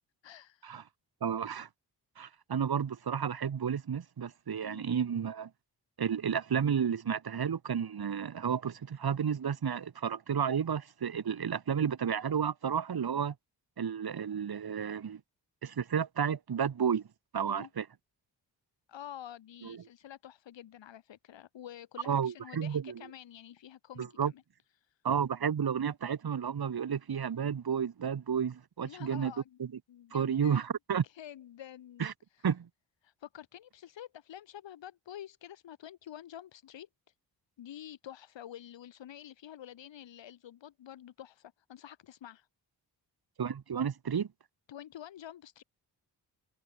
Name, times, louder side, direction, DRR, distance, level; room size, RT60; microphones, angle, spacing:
voice 1, 0.2-0.7 4.6-4.9 17.5-17.7 18.9-24.4 24.8-25.0 28.8-29.6 29.9-30.6 31.0-32.1 32.3-32.5 33.0-36.9 37.6-42.5 44.7-45.6, left 11 dB, 85° left, 7.1 m, -48 dB
voice 2, 1.2-1.7 2.2-5.5 6.0-13.3 13.8-15.2 15.6-17.1 17.3-17.9 19.6-19.8 22.1-22.9 24.0-24.3 25.0-29.3 29.6-29.7 30.1-31.0 32.0-32.1 32.4-32.7 43.4-44.3, right 7 dB, 55° right, 2.6 m, -32 dB
cardioid pair, 55°, 43 cm